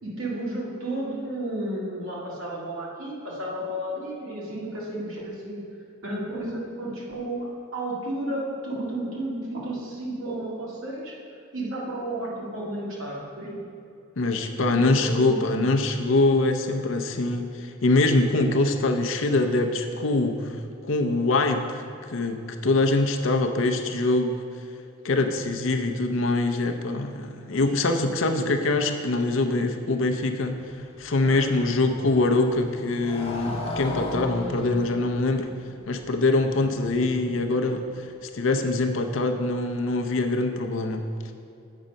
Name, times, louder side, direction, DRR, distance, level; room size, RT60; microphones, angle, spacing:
voice 1, 0.0-5.6 6.0-11.2 11.5-13.6 14.5-15.8 25.5-25.6 27.5-27.6 31.2-31.4, right 1 dB, 75° right, -5 dB, 1.9 m, -32 dB
voice 2, 14.2-24.4 25.0-35.5 35.9-41.3, left 2 dB, 65° left, 5 dB, 0.6 m, -24 dB
Motorcycle, 29.9-38.0, left 1 dB, 30° left, 0.8 m, -38 dB
7.3 x 5.4 x 5.2 m, 2.7 s
head